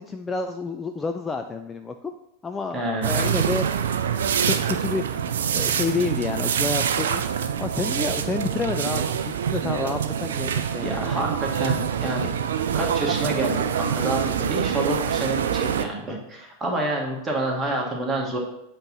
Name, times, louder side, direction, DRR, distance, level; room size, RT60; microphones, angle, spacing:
voice 1, 0.0-2.1 2.4-5.2 5.5-11.4, left 4 dB, 15° left, 6 dB, 0.3 m, -30 dB
voice 2, 2.7-3.2 10.8-12.3 12.7-18.4, right 1 dB, 15° right, -1 dB, 1.6 m, -28 dB
sound 1, 3.0-15.9, right 8 dB, 60° right, 0.4 m, -25 dB
7.6 x 3.0 x 5.4 m, 0.83 s
figure-of-eight pair, 90°, 0 cm